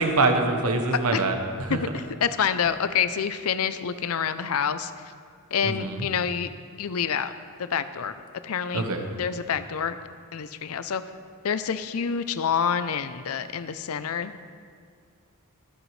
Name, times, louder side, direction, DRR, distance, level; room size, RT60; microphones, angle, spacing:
voice 1, 0.0-1.8 5.6-6.1 8.7-9.1, right 3 dB, 85° right, 4 dB, 1.1 m, -24 dB
voice 2, 1.7-4.9 5.5-6.5 6.8-7.3 7.6-8.1 8.4-8.9 9.2-10.0 10.3-11.0 11.4-14.3, left 7 dB, 75° left, 12 dB, 0.5 m, -27 dB
22.5 x 7.9 x 3.2 m, 2.2 s
head